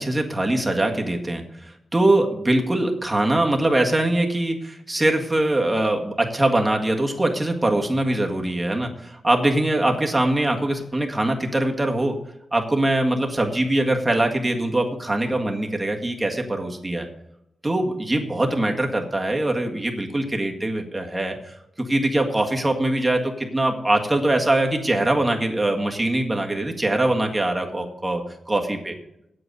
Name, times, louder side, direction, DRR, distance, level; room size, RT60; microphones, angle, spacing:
voice 1, 0.0-12.2 12.5-17.1 17.6-28.9, right 1 dB, 15° right, 2 dB, 1.7 m, -22 dB
8.5 x 7.9 x 6.7 m, 0.81 s
cardioid pair, 80°, 0 cm